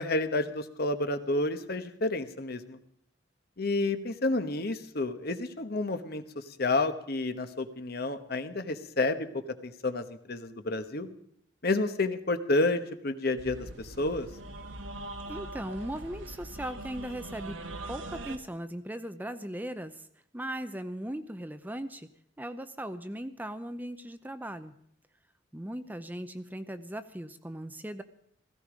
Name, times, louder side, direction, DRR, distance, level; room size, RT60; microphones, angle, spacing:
voice 1, 0.0-2.8 3.6-11.1 11.6-14.3, left 2 dB, 55° left, 9 dB, 1.2 m, -30 dB
sound 1, 13.4-18.4, right 2 dB, 80° right, 1.5 m, -42 dB
voice 2, 15.3-17.6 17.9-20.1 20.3-22.1 22.4-24.7 25.5-28.0, right 1 dB, 10° right, 10 dB, 0.6 m, -38 dB
16.5 x 15.5 x 5.1 m, 0.69 s
head